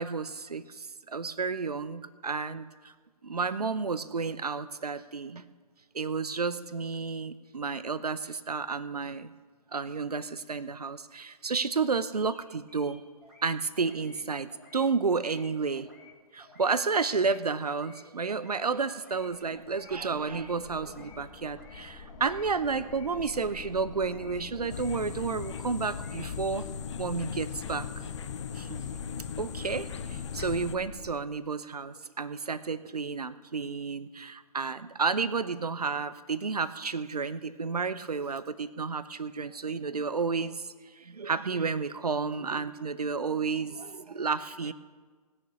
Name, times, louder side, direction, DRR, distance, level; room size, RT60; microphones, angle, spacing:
voice 1, 0.0-2.7 3.2-5.4 5.9-9.3 9.7-13.0 13.4-15.9 16.3-26.6 27.0-27.9 28.5-28.8 29.4-40.6 41.0-44.7, right 4 dB, 70° right, 15 dB, 0.7 m, -31 dB
sound 1, 12.1-12.4 12.7-13.5 13.7-14.2 14.5-14.8 15.1-15.5 15.7-16.1 16.4-16.7 17.0-17.4 17.6-18.0 18.3-18.6 18.9-19.3 19.5-19.9 20.2-20.5 20.8-21.2 21.4-21.8 22.1-22.4 22.7-23.1 23.3-23.7 24.0-24.3 24.6-25.0 25.2-25.6 25.9-26.2, left 3 dB, ahead, 2.0 m, -55 dB
sound 2, 19.2-31.1, left 5 dB, 30° left, 1.2 m, -44 dB
sound 3, 24.7-30.8, left 8 dB, 45° left, 0.4 m, -39 dB
18.5 x 6.6 x 6.9 m, 1.5 s
figure-of-eight pair, 130°, 20 cm